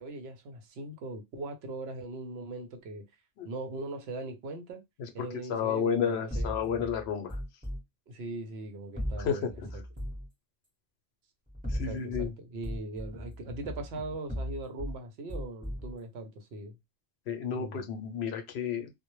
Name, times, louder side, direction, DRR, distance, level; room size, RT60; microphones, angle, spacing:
voice 1, 0.0-3.0 3.4-4.8 5.1-6.5 8.1-9.6 10.0-10.1 11.7-16.8 17.5-17.9, right 2 dB, 70° right, 0.8 m, -40 dB
voice 2, 5.5-7.4 9.2-9.5 11.7-12.3 17.3-18.9, left 7 dB, 70° left, 0.8 m, -31 dB
sound 1, 6.3-7.8 9.0-10.3 11.5-12.3 12.6-15.0 15.3-15.9, equal, 10° right, 0.9 m, -37 dB
2.1 x 2.1 x 2.9 m
omnidirectional pair, 1.2 m